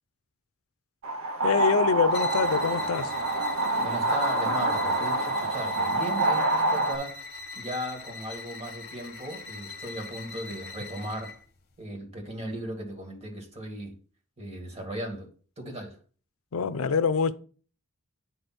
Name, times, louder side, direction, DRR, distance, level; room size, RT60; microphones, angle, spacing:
sound 1, 1.0-7.0, right 2 dB, 75° right, 1.0 m, -26 dB
voice 1, 1.4-3.1 16.5-17.3, left 5 dB, 75° left, 0.5 m, -25 dB
sound 2, 2.1-11.4, left 3 dB, 45° left, 1.1 m, -41 dB
voice 2, 3.8-7.3 7.6-11.4 11.8-13.9 14.4-15.3 15.6-16.0, right 1 dB, 30° right, 2.2 m, -37 dB
9.5 x 3.4 x 6.0 m
head